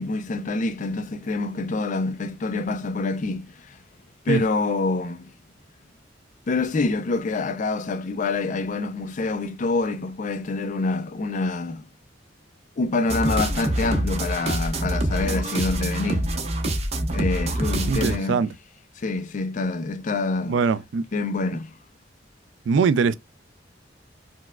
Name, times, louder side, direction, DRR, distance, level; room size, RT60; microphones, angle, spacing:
voice 1, 0.0-3.8 4.3-5.3 6.5-11.8 12.8-16.3 17.1-18.4 19.0-20.6 21.1-21.7, left 3 dB, 40° left, 0.4 m, -26 dB
sound 1, 13.1-18.2, right 1 dB, 35° right, 0.6 m, -25 dB
voice 2, 17.9-18.5 20.5-21.0 22.7-23.1, right 5 dB, 75° right, 0.3 m, -21 dB
4.5 x 2.1 x 2.2 m
head